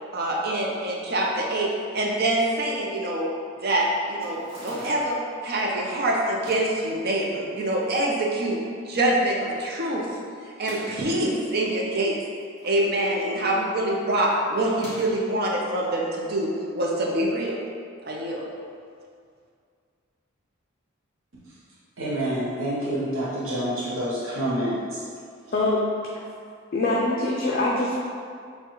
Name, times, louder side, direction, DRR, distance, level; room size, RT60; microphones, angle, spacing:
voice 1, 0.1-3.3 3.6-10.1 10.6-12.2 12.6-17.6 18.0-18.4, right 1 dB, 50° right, -2 dB, 0.6 m, -25 dB
sound 1, 4.2-5.2 6.3-6.8 7.6-8.3 8.6-8.7 8.9-9.0 10.5-11.1 12.1-12.9 13.2-13.5 14.7-15.3, equal, 20° right, 1.1 m, -42 dB
voice 2, 22.0-25.0, right 1 dB, 80° right, -7 dB, 0.8 m, -27 dB
voice 3, 25.5-26.2 26.7-28.0, left 2 dB, 45° left, -4 dB, 0.4 m, -24 dB
6.8 x 2.3 x 3.0 m, 2.2 s
head